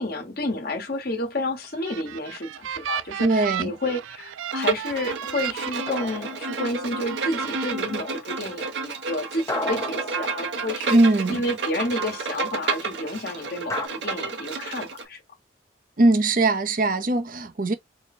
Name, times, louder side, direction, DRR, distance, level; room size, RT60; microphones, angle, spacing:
voice 1, 0.0-11.0 11.3-15.2, left 1 dB, 50° left, 1.3 m, -30 dB
sound 1, 1.6-6.7 7.1-7.7, right 10 dB, 90° right, 0.3 m, -34 dB
voice 2, 3.2-3.7 10.9-11.4 16.0-17.7, right 2 dB, 45° right, 0.6 m, -20 dB
Bowed string instrument, 4.5-15.0, right 4 dB, 65° right, 0.9 m, -31 dB
sound 2, 5.9-7.1 9.5-11.2 13.7-13.9, left 1 dB, 15° left, 0.8 m, -33 dB
3.2 x 2.2 x 4.2 m
head